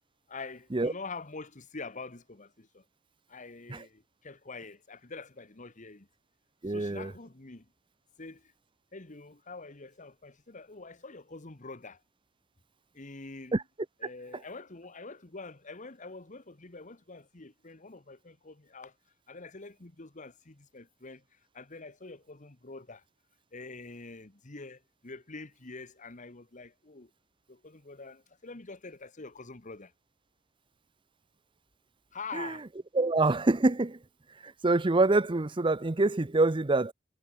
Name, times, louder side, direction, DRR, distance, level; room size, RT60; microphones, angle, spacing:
voice 1, 0.3-2.8 3.3-6.1 6.7-7.7 8.2-8.5 8.9-12.0 12.9-13.6 14.0-18.9 19.3-23.0 23.5-27.1 27.5-29.9 32.1-32.6, left 3 dB, 40° left, 1.5 m, -45 dB
voice 2, 6.6-7.1 13.5-13.6 14.3-14.4 32.3-32.6 32.9-34.0 34.3-36.9, right 2 dB, 25° right, 0.7 m, -26 dB
head